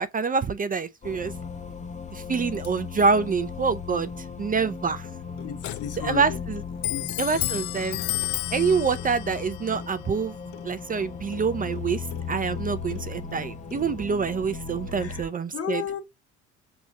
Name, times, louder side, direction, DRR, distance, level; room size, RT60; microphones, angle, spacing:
voice 1, 0.0-1.3 2.1-5.1 6.0-6.6 7.2-8.0 8.5-10.4 10.6-15.8, right 5 dB, 30° right, 0.5 m, -26 dB
sound 1, 1.0-15.2, left 6 dB, 25° left, 0.8 m, -37 dB
Clock, 5.0-14.3, left 18 dB, 75° left, 0.5 m, -35 dB
voice 2, 5.4-6.4 6.9-7.5 14.9-15.3 15.5-16.0, left 7 dB, 50° left, 1.7 m, -34 dB
5.1 x 3.6 x 2.9 m
supercardioid pair, 80°, 30 cm